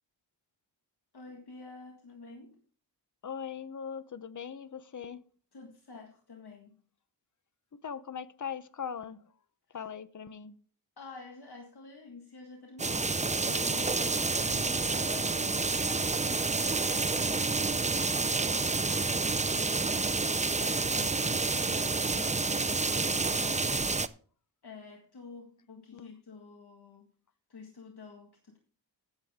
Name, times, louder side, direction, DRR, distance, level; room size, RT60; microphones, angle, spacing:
voice 1, 1.1-2.6 5.5-6.8 9.7-9.9 11.0-16.3 16.6-23.8 24.6-27.1 27.5-28.6, left 4 dB, 60° left, 2 dB, 1.7 m, -49 dB
voice 2, 3.2-5.2 7.7-9.2 9.7-10.6 25.9-26.1, left 7 dB, 40° left, 14 dB, 0.8 m, -40 dB
sound 1, 12.8-24.1, right 3 dB, 15° right, 0.5 m, -29 dB
15.0 x 7.6 x 3.6 m, 0.44 s
wide cardioid pair, 80°, 45 cm